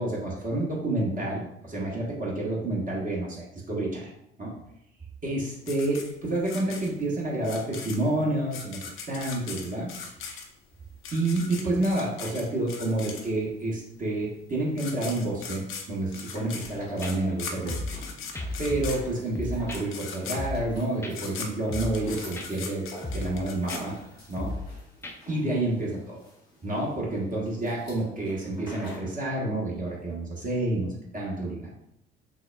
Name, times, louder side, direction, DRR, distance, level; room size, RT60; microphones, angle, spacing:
voice 1, 0.0-4.1 4.4-4.6 5.2-8.8 9.1-9.9 11.1-15.6 15.9-17.8 18.6-22.8 23.1-24.0 24.3-24.5 25.3-26.2 26.6-31.8, right 2 dB, 30° right, -4 dB, 1.2 m, -29 dB
sound 1, 5.7-13.6 14.4-14.5 14.7-24.4, left 5 dB, 45° left, 0.7 m, -40 dB
sound 2, 15.9-29.2, equal, 90° left, 1.2 m, -48 dB
sound 3, 16.6-16.7 17.0-17.1 17.7-18.0 18.3-19.1 19.3-19.8 20.3-20.7 21.0-21.1 21.7-22.1 22.4-22.5 23.0-23.4 23.7-23.8 24.4-24.7 25.0-25.1, left 2 dB, 10° left, 0.4 m, -34 dB
6.0 x 2.1 x 2.2 m, 0.78 s
figure-of-eight pair, 55°, 30 cm